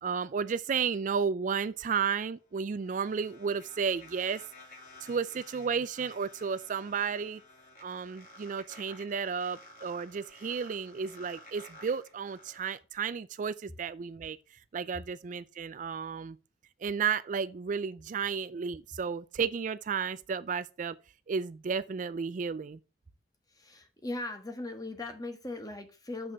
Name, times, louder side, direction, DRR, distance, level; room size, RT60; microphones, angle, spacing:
voice 1, 0.0-4.4 5.0-7.4 7.8-14.4 14.7-16.4 16.8-21.0 21.3-22.8, right 6 dB, 45° right, 0.4 m, -33 dB
sound 1, 2.3-12.7, left 2 dB, 50° left, 3.7 m, -53 dB
voice 2, 23.5-26.3, left 2 dB, 20° left, 1.4 m, -39 dB
6.8 x 5.5 x 6.0 m
head